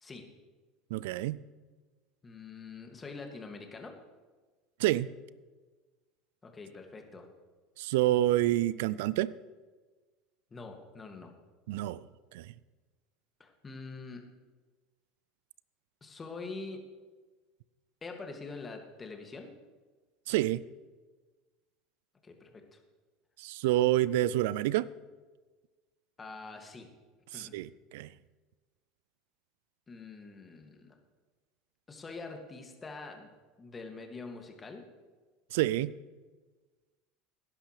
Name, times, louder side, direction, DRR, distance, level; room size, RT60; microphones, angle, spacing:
voice 1, 0.9-1.4 4.8-5.1 7.8-9.3 11.7-12.0 12.3-12.5 20.3-20.6 23.4-24.9 27.3-28.1 35.5-35.9, right 15 dB, 70° right, 20 dB, 0.4 m, -28 dB
voice 2, 2.2-4.0 6.4-7.3 10.5-11.3 13.4-14.3 16.0-16.8 18.0-19.5 22.2-22.8 26.2-26.9 27.3-27.6 29.9-30.9 31.9-33.3 33.6-34.9, left 3 dB, 25° left, 3 dB, 2.3 m, -45 dB
17.5 x 10.5 x 3.4 m, 1.3 s
hypercardioid pair, 75°, 0 cm